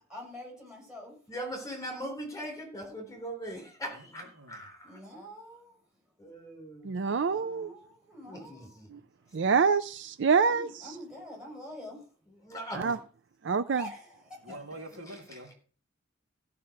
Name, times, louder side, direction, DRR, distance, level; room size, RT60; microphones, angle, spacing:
voice 1, 0.1-1.2 4.8-5.8 7.2-8.8 10.4-12.1 13.5-14.6, left 1 dB, 5° right, -1 dB, 7.9 m, -46 dB
voice 2, 1.3-5.0 6.2-6.9 8.3-8.9 12.4-13.0, equal, 15° left, 3 dB, 3.6 m, -40 dB
voice 3, 3.9-4.6 14.4-15.5, right 1 dB, 80° right, 1 dB, 2.8 m, -46 dB
voice 4, 6.8-7.7 9.3-10.7 12.8-13.0 13.4-13.8, right 5 dB, 60° right, 13 dB, 0.5 m, -26 dB
15.5 x 5.6 x 6.5 m, 0.41 s
head